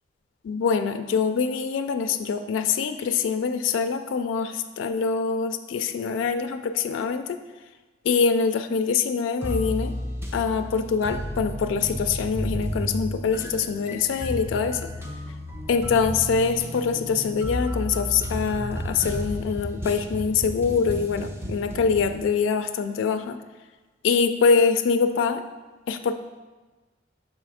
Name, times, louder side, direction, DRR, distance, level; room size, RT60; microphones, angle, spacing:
voice 1, 0.4-7.4 8.1-9.9 10.3-14.8 15.7-23.4 24.0-25.4 25.9-26.1, left 5 dB, 85° left, 8 dB, 0.3 m, -24 dB
sound 1, 9.4-22.2, equal, 15° right, 0.6 m, -32 dB
6.4 x 4.2 x 4.8 m, 1.2 s
head